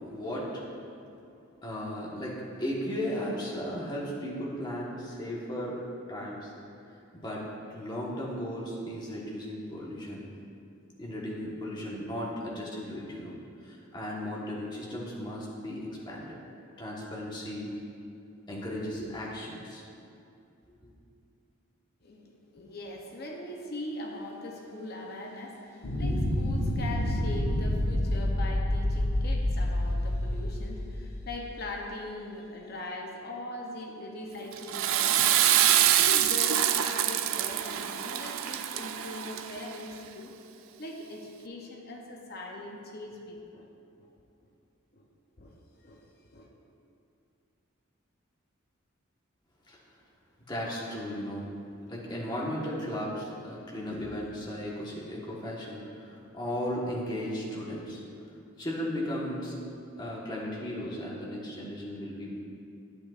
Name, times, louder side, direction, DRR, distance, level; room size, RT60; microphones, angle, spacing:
voice 1, 0.1-0.5 1.6-5.8 6.1-6.5 7.1-7.4 7.7-10.3 11.0-13.4 13.6-16.4 16.8-17.7 18.5-19.8 20.8-20.9 49.7-49.8 50.5-51.5 51.9-58.0 58.6-59.6 60.0-62.4, equal, 20° left, -5 dB, 1.2 m, -36 dB
voice 2, 22.0-43.7 44.0-44.1 44.9-45.0 45.4-46.0 46.3-46.5, left 2 dB, 45° left, 0 dB, 0.7 m, -41 dB
sound 1, 25.8-31.6, left 1 dB, 85° left, 1.2 m, -28 dB
Water / Toilet flush, 34.5-39.8, right 11 dB, 75° right, 0.4 m, -25 dB
10.5 x 8.6 x 2.4 m, 2.6 s
head